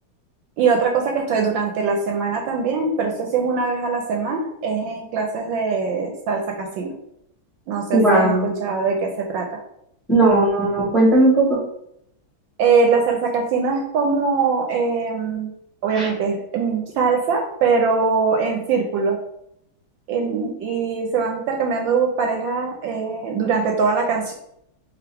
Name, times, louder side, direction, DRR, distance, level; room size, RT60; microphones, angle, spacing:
voice 1, 0.6-6.9 7.7-8.3 8.6-9.5 12.6-15.5 15.8-19.2 20.1-24.3, right 5 dB, 75° right, 2 dB, 1.2 m, -22 dB
voice 2, 7.9-8.5 10.1-11.6 16.0-16.1, right 2 dB, ahead, -4 dB, 1.1 m, -17 dB
5.0 x 3.0 x 3.4 m, 0.75 s
omnidirectional pair, 2.3 m